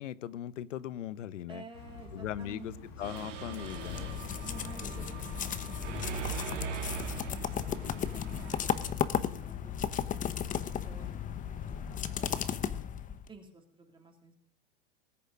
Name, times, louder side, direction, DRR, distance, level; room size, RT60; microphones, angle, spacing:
voice 1, 0.0-1.6 2.1-4.1, left 11 dB, 85° left, 18 dB, 1.0 m, -39 dB
voice 2, 1.5-2.9 4.4-6.4 7.3-8.9 9.3-12.8 13.3-14.4, right 4 dB, 15° right, 3 dB, 2.9 m, -53 dB
sound 1, 1.7-12.3, left 4 dB, 70° left, 6.2 m, -49 dB
Mechanisms, 3.0-8.9, right 8 dB, 90° right, 3.1 m, -41 dB
sound 2, 3.5-13.3, left 9 dB, 20° left, 1.0 m, -35 dB
20.0 x 6.7 x 9.3 m, 0.66 s
hypercardioid pair, 125°, 36 cm